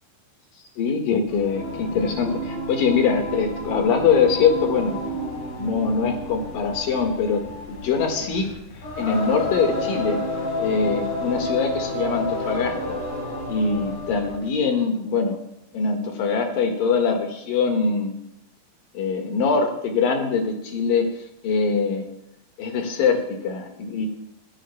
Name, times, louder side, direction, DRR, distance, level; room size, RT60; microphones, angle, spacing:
voice 1, 0.8-5.0 5.6-7.4 7.7-8.5 9.0-10.2 10.6-13.0 13.5-15.4 15.7-18.2 18.9-21.1 21.4-22.1 22.6-24.1, left 5 dB, 85° left, 3 dB, 3.5 m, -23 dB
Singing, 1.3-14.5, left 1 dB, 60° left, 5.4 m, -30 dB
25.5 x 14.0 x 2.2 m, 0.82 s
omnidirectional pair, 3.9 m